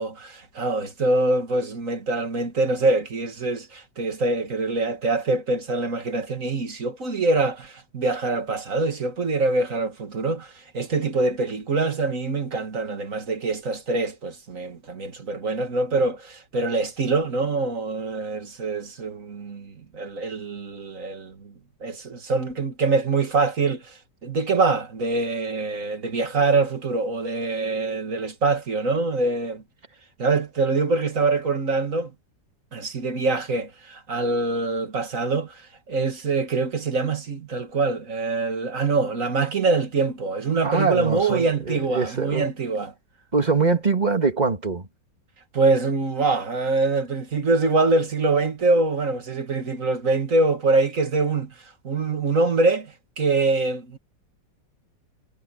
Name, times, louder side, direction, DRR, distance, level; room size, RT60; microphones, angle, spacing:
voice 1, 0.0-21.5 21.8-23.9 24.2-29.6 30.2-32.1 32.7-35.6 35.9-42.9 45.5-51.5 51.8-54.0, right 3 dB, 45° right, 2.4 m, -24 dB
voice 2, 40.6-42.5 43.3-44.9, right 4 dB, 25° right, 2.2 m, -23 dB
omnidirectional pair, 2.0 m